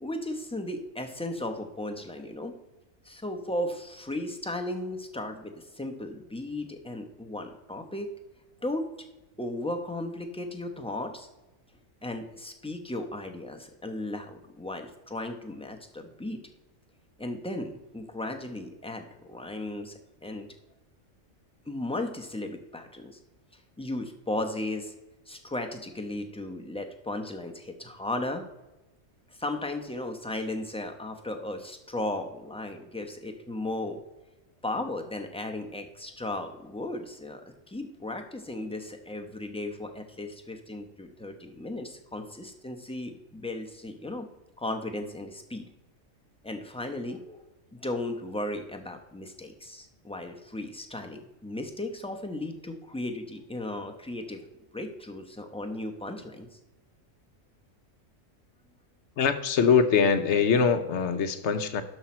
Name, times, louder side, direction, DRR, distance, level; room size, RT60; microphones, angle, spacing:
voice 1, 0.0-2.5 3.0-8.1 8.6-8.8 9.4-11.3 12.0-16.4 17.2-20.5 21.7-23.2 23.8-24.9 25.3-28.4 29.4-34.0 34.6-37.4 37.7-44.3 44.6-45.7 46.4-47.4 47.7-54.4 54.7-56.5, left 1 dB, 5° left, 4 dB, 0.6 m, -35 dB
voice 2, 59.2-61.8, left 6 dB, 65° left, 10 dB, 1.0 m, -23 dB
12.0 x 5.6 x 4.3 m, 1.0 s
omnidirectional pair, 1.4 m